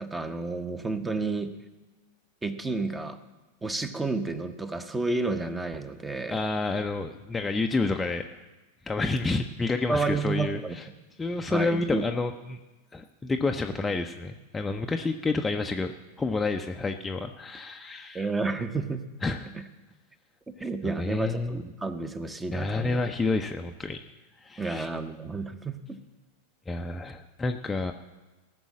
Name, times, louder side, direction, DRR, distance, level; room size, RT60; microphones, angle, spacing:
voice 1, 0.0-1.5 2.4-3.2 3.6-6.4 9.9-10.8 11.5-12.0 18.1-19.0 19.5-19.6 20.6-23.0 24.6-26.0, right 3 dB, 10° right, 10 dB, 1.0 m, -31 dB
voice 2, 6.3-8.3 8.9-10.8 11.2-12.6 12.9-15.9 16.2-18.3 19.2-19.5 20.6-21.6 22.5-24.0 24.4-24.9 26.7-27.9, left 3 dB, 10° left, 4 dB, 0.6 m, -29 dB
18.0 x 6.2 x 7.4 m, 1.1 s
figure-of-eight pair, 90°, 0 cm